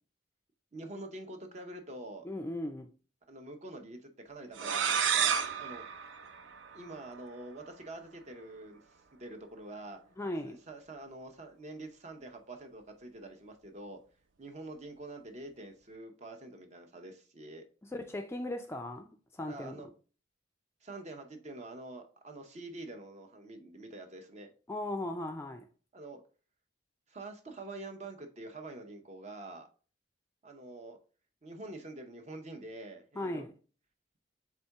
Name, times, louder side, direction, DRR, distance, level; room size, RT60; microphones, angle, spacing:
voice 1, 0.7-2.3 3.3-5.9 6.7-8.8 9.2-10.0 10.4-14.0 14.4-17.6 19.5-19.9 20.8-24.5 25.9-26.2 27.1-29.7 30.4-31.0 31.4-33.4, right 2 dB, 40° right, 0.7 m, -46 dB
voice 2, 2.2-2.9 10.2-10.6 17.9-19.8 24.7-25.7 33.2-33.5, left 1 dB, 15° left, 0.3 m, -37 dB
sound 1, 4.5-7.2, right 7 dB, 85° right, 0.5 m, -31 dB
4.2 x 3.6 x 3.4 m
head